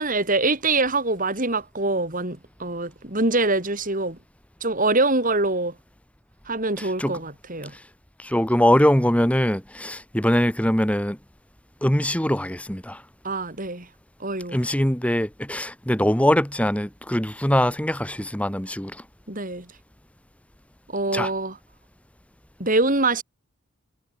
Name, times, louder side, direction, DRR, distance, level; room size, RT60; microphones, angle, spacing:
voice 1, 0.0-4.2 4.6-5.7 6.5-7.7 13.2-13.9 14.2-14.6 19.3-19.7 20.9-21.6 22.6-23.2, right 2 dB, 40° right, 4.5 m, -24 dB
voice 2, 6.8-7.2 8.2-11.2 11.8-13.0 14.5-19.0 21.1-21.3, equal, 5° left, 1.8 m, -22 dB
head